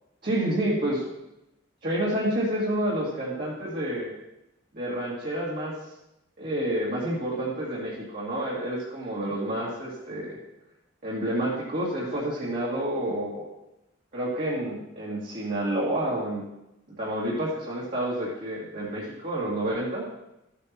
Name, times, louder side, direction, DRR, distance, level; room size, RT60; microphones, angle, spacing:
voice 1, 0.2-1.0 1.8-4.1 4.7-5.7 6.4-10.4 11.0-13.5 14.1-16.4 17.0-20.0, right 1 dB, 45° right, -8 dB, 2.5 m, -29 dB
14.0 x 8.5 x 3.0 m, 0.89 s
head